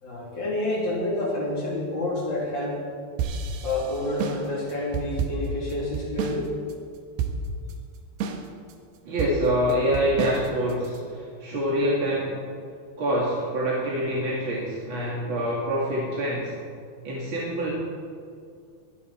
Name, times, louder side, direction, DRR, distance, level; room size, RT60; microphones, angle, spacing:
voice 1, 0.0-2.8 3.6-6.5, left 1 dB, 30° left, -4 dB, 3.5 m, -28 dB
sound 1, 3.2-6.4 6.7-6.8 7.2-7.7 8.2-8.7 9.2-11.0, right 5 dB, 85° right, 3.1 m, -30 dB
voice 2, 9.1-12.4 13.0-16.5 17.0-17.7, equal, 40° right, -5 dB, 2.0 m, -26 dB
23.5 x 10.5 x 4.4 m, 2.3 s
omnidirectional pair, 4.6 m